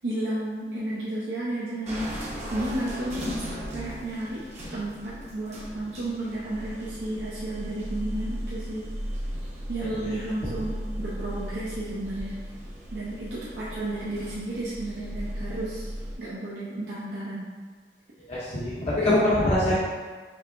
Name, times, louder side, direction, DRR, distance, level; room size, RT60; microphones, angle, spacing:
voice 1, 0.0-3.3 3.7-4.4 4.7-8.8 9.7-12.4 12.9-15.9 16.2-17.5, right 1 dB, 70° right, -9 dB, 0.7 m, -32 dB
sound 1, 1.8-16.1, equal, 40° right, 0.9 m, -36 dB
voice 2, 18.3-19.8, left 1 dB, 35° left, -9 dB, 0.7 m, -24 dB
4.6 x 3.3 x 2.5 m, 1.5 s
head